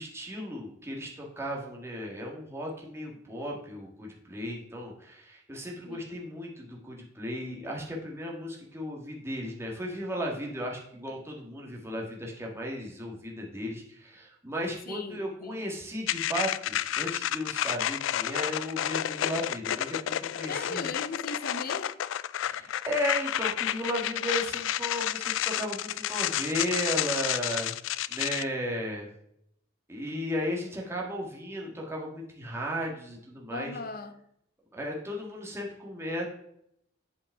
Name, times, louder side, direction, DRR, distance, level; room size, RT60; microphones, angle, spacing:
voice 1, 0.0-20.9 22.4-27.7 28.1-29.1 29.9-33.7 34.7-36.2, equal, 15° right, 1.6 m, -35 dB
voice 2, 14.9-15.7 20.5-21.9 33.5-34.1, left 3 dB, 50° left, 0.8 m, -38 dB
sound 1, 16.1-28.4, left 12 dB, 80° left, 0.3 m, -30 dB
8.0 x 5.3 x 4.6 m
head